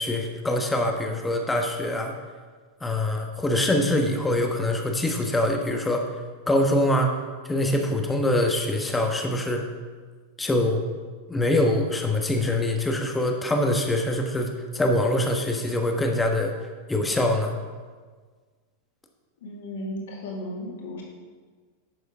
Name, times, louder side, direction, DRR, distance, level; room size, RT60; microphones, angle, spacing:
voice 1, 0.0-2.1 2.8-6.1 6.5-7.2 7.4-9.6 10.4-10.8 11.3-16.5 16.9-17.5, left 1 dB, 10° left, 3 dB, 1.2 m, -24 dB
voice 2, 19.4-21.0, left 1 dB, 60° left, -2 dB, 2.2 m, -35 dB
10.5 x 7.0 x 3.7 m, 1.5 s
figure-of-eight pair, 90°, 0 cm